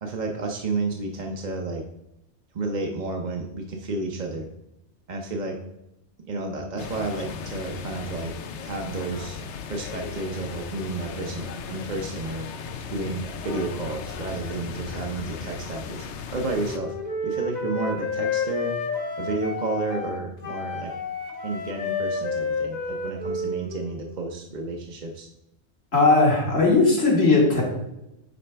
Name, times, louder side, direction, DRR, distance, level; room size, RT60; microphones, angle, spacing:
voice 1, 0.0-1.8 2.5-4.5 5.1-5.6 6.2-8.3 8.6-9.4 9.7-12.5 12.9-16.9 17.2-18.7 19.2-20.9 21.4-25.3, right 3 dB, 45° right, 1 dB, 0.8 m, -31 dB
sound 1, 6.8-16.8, left 6 dB, 80° left, 0.9 m, -36 dB
Wind instrument woodwind instrument, 16.6-24.0, left 3 dB, 40° left, 1.1 m, -30 dB
voice 2, 25.9-27.6, left 3 dB, 65° left, -4 dB, 2.2 m, -18 dB
9.3 x 4.3 x 3.4 m, 0.87 s
omnidirectional pair, 1.2 m